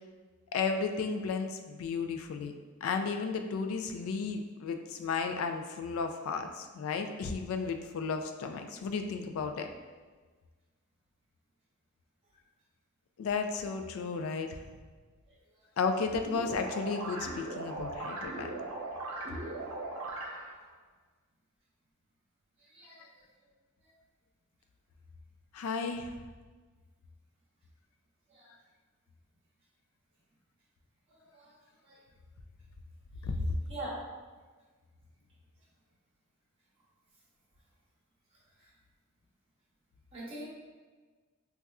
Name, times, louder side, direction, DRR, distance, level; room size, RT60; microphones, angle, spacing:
voice 1, 0.5-2.5 2.8-9.7 13.2-14.6 15.8-18.5 23.0-23.1 25.5-26.2 33.2-33.4, left 5 dB, 85° left, 6 dB, 0.3 m, -33 dB
sound 1, 16.2-20.7, right 2 dB, 80° right, 0.6 m, -39 dB
voice 2, 22.7-23.1 28.3-28.5 31.1-31.5 31.8-32.0 33.7-34.0 38.6-38.7 40.1-40.4, right 1 dB, 25° right, -8 dB, 0.9 m, -43 dB
4.1 x 2.3 x 2.3 m, 1.4 s
head